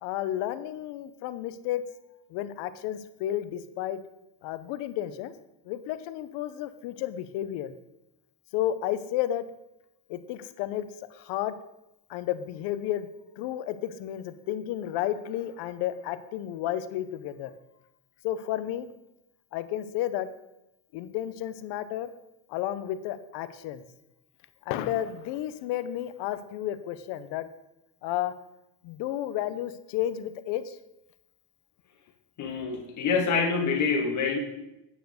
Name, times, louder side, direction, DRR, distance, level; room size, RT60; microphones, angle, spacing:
voice 1, 0.0-1.8 2.3-4.0 4.4-5.3 5.6-7.7 8.5-9.5 10.1-11.6 12.1-13.1 13.4-17.5 18.2-18.9 19.5-20.3 20.9-22.1 22.5-23.8 24.7-27.5 28.0-28.3 28.8-30.8, left 12 dB, 55° left, 13 dB, 0.7 m, -32 dB
voice 2, 32.4-34.4, left 5 dB, 35° left, 2 dB, 1.6 m, -26 dB
9.1 x 4.7 x 6.3 m, 0.91 s
cardioid pair, 150°, 50 cm